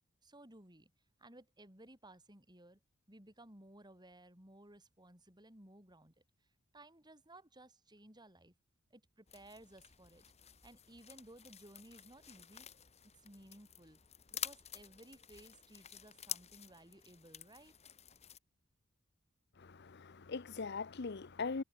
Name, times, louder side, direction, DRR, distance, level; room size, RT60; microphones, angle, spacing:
voice 1, 0.2-0.9 1.2-2.8 3.1-6.1 6.7-8.5 8.9-12.7 13.2-14.0 14.3-17.7, right 1 dB, 20° right, 6.2 m, -58 dB
sound 1, 9.3-18.4, left 9 dB, 30° left, 1.6 m, -49 dB
voice 2, 19.6-21.6, left 4 dB, 55° left, 0.8 m, -41 dB
head